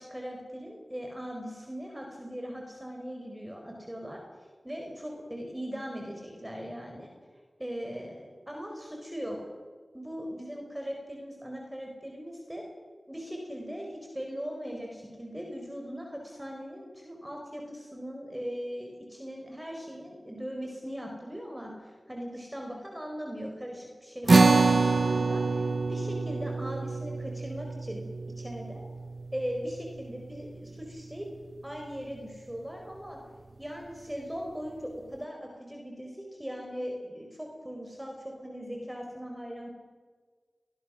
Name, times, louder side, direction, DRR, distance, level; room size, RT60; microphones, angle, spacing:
voice 1, 0.0-4.2 4.6-7.1 7.6-9.4 9.9-12.6 13.1-28.1 28.4-28.9 29.3-31.3 31.6-33.2 33.6-39.7, equal, 10° right, 1 dB, 4.7 m, -39 dB
sound 1, 24.3-30.9, right 3 dB, 70° right, 1.2 m, -26 dB
26.5 x 21.0 x 6.4 m, 1.5 s
wide cardioid pair, 65°, 0 cm